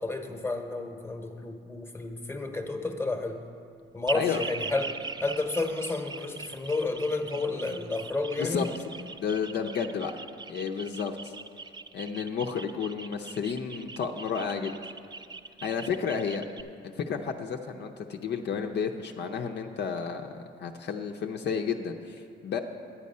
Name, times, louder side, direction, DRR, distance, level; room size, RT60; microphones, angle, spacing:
voice 1, 0.0-3.4 3.9-8.8, left 3 dB, 10° left, 5 dB, 1.0 m, -31 dB
sound 1, 4.1-16.6, right 4 dB, 20° right, 0.4 m, -41 dB
voice 2, 9.2-10.1 10.5-11.3 11.9-14.8 15.6-16.4 16.8-22.6, left 6 dB, 60° left, 3 dB, 0.6 m, -31 dB
10.0 x 8.5 x 5.4 m, 2.3 s
cardioid pair, 90°, 20 cm